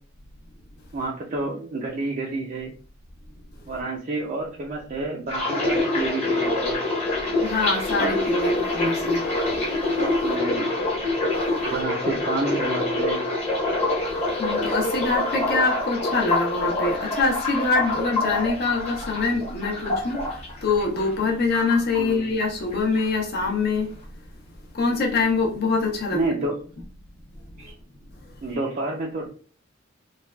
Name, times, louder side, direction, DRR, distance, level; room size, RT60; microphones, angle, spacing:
voice 1, 0.9-2.7 3.7-6.8 10.2-10.7 11.7-13.2 22.0-22.3 26.1-26.5 27.6-27.7 28.4-29.3, right 2 dB, 40° right, 0.4 m, -29 dB
sound 1, 5.3-21.2 21.5-22.4 22.7-23.1, left 2 dB, 35° left, 1.0 m, -26 dB
voice 2, 7.4-9.2 14.4-20.2 20.6-23.9 24.7-26.2, left 3 dB, 55° left, 0.7 m, -24 dB
3.2 x 2.3 x 2.2 m
head